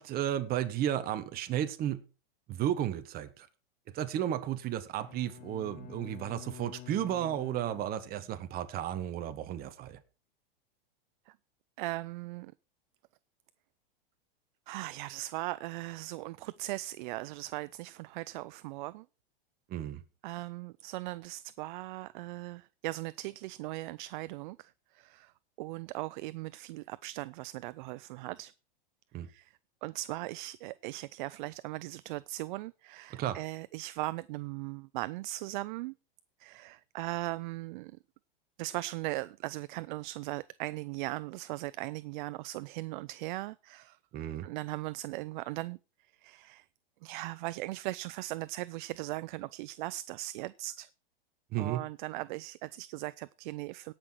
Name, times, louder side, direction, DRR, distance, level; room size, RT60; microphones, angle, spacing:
voice 1, 0.0-2.0 2.5-3.5 3.9-10.0 19.7-20.0 29.1-29.3 33.1-33.4 44.1-44.5 51.5-51.8, right 11 dB, 30° right, 1.2 m, -33 dB
Bowed string instrument, 5.0-8.6, left 15 dB, 30° left, 0.9 m, -49 dB
voice 2, 11.8-12.5 14.7-19.1 20.2-25.3 25.6-28.5 29.3-35.9 36.4-38.0 38.6-44.0 44.4-45.8 46.1-46.7 47.0-50.9 51.6-53.9, right 18 dB, 55° right, 0.5 m, -39 dB
17.5 x 6.0 x 4.5 m
hypercardioid pair, 130°, 29 cm